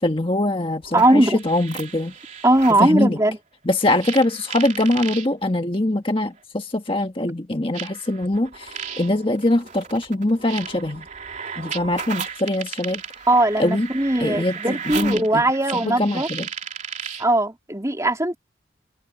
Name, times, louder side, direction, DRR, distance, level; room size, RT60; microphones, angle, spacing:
voice 1, 0.0-2.1 2.7-3.2 3.6-11.1 11.6-13.0 13.6-13.9 14.2-15.4 15.7-16.5, left 1 dB, 30° left, 1.5 m, -23 dB
sound 1, 0.8-2.9 4.0-5.3 6.4-6.5 7.7-17.3, right 7 dB, 40° right, 3.3 m, -35 dB
voice 2, 0.9-1.4 2.4-3.4 13.3-16.3 17.2-18.4, right 1 dB, 15° right, 3.3 m, -19 dB
head